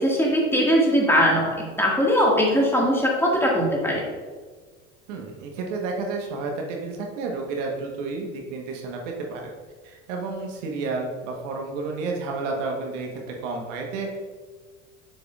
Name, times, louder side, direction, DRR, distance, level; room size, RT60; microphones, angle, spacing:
voice 1, 0.0-4.0, equal, 5° left, -3 dB, 1.7 m, -20 dB
voice 2, 5.1-9.5 9.8-14.2, right 3 dB, 70° right, 1 dB, 1.2 m, -31 dB
6.7 x 6.2 x 2.3 m, 1.4 s
hypercardioid pair, 80°, 38 cm